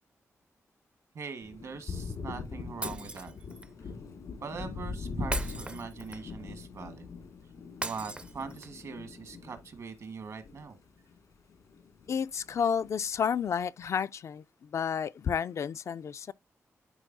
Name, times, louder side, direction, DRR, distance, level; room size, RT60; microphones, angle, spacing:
voice 1, 1.1-3.3 3.8-3.9 4.4-7.1 7.8-10.8, right 5 dB, 70° right, 1.4 m, -42 dB
Thunder, 1.4-11.2 11.5-12.6, left 4 dB, 85° left, 1.8 m, -41 dB
Shatter, 2.8-3.7 5.3-6.4 7.8-8.8, right 2 dB, 20° right, 0.4 m, -38 dB
voice 2, 12.1-16.3, left 7 dB, 65° left, 0.3 m, -31 dB
11.0 x 4.1 x 2.6 m
wide cardioid pair, 120°, 5 cm